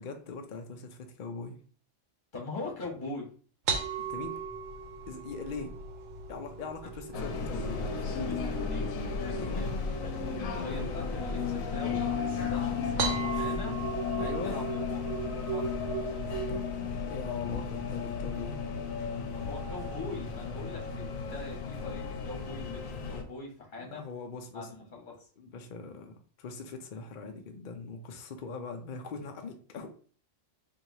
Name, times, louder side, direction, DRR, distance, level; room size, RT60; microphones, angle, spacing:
voice 1, 0.0-1.6 4.1-4.4 5.1-5.7 6.3-8.3 9.4-9.7 13.0-13.5 14.2-14.6 16.5-16.7 17.0-18.6 23.8-24.7 25.4-29.9, left 4 dB, 60° left, 5 dB, 0.5 m, -41 dB
voice 2, 2.3-3.3 7.8-8.9 9.2-13.8 14.2-15.1 15.5-15.7 19.3-24.0 24.5-25.3, left 3 dB, 40° left, -2 dB, 1.4 m, -42 dB
sound 1, 3.7-16.8, right 5 dB, 75° right, 1.0 m, -38 dB
sound 2, 7.1-23.2, left 5 dB, 85° left, 1.0 m, -34 dB
4.5 x 2.7 x 2.7 m, 0.42 s
omnidirectional pair, 1.4 m